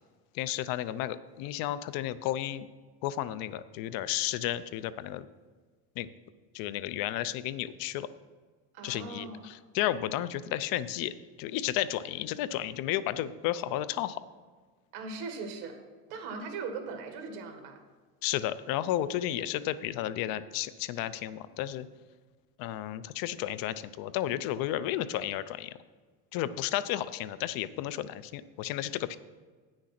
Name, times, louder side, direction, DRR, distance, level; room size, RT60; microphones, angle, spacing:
voice 1, 0.3-2.7 3.0-5.3 6.0-6.1 6.5-8.1 8.8-14.2 18.2-21.9 22.6-25.7 26.3-29.2, left 13 dB, 60° left, 15 dB, 0.6 m, -32 dB
voice 2, 8.7-9.5 14.9-15.8 16.1-17.8, right 4 dB, 70° right, 5 dB, 1.8 m, -39 dB
9.4 x 6.5 x 5.9 m, 1.4 s
cardioid pair, 145°, 40 cm